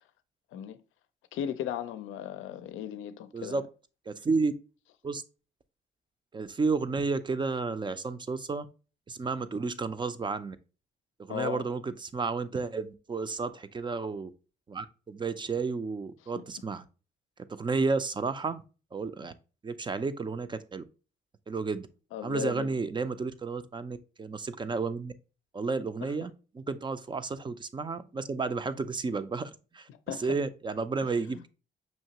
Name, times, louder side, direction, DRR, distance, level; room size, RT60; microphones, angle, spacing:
voice 1, 1.3-3.6 11.3-11.7 22.1-22.8 26.0-26.1 30.1-30.3 31.3-31.5, left 9 dB, 85° left, 0.5 m, -36 dB
voice 2, 4.1-4.5 5.0-5.2 6.3-8.7 9.1-10.6 11.2-14.3 14.7-16.9 17.6-18.6 18.9-19.3 19.6-20.8 21.5-21.9 22.2-25.1 25.5-31.5, right 4 dB, 25° right, 0.4 m, -32 dB
5.5 x 2.8 x 2.8 m
cardioid pair, 90°, 20 cm